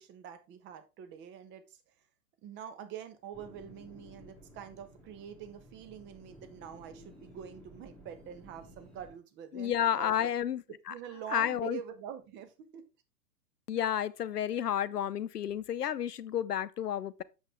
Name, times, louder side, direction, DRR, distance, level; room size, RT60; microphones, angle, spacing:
voice 1, 0.0-1.8 2.4-10.3 10.9-12.9, right 9 dB, 20° right, 1.2 m, -45 dB
sound 1, 3.3-9.1, equal, ahead, 4.7 m, -55 dB
voice 2, 9.5-10.9 11.3-11.8 13.7-17.2, left 10 dB, 70° left, 0.8 m, -31 dB
8.2 x 7.5 x 3.5 m
figure-of-eight pair, 115°, 49 cm